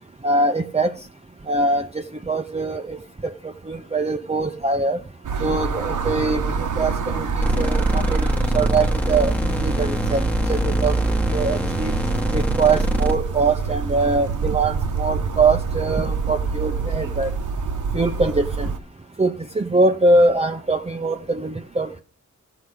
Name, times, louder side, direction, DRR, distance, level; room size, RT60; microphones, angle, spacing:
voice 1, 0.2-0.9 1.5-5.0 5.4-11.9 12.3-17.3 17.9-18.7 19.2-22.0, right 3 dB, 20° right, 0.7 m, -23 dB
sound 1, 5.2-18.8, right 5 dB, 75° right, 1.0 m, -27 dB
sound 2, 7.4-13.1, right 1 dB, 5° left, 1.3 m, -23 dB
14.0 x 5.0 x 8.3 m
wide cardioid pair, 85°, 31 cm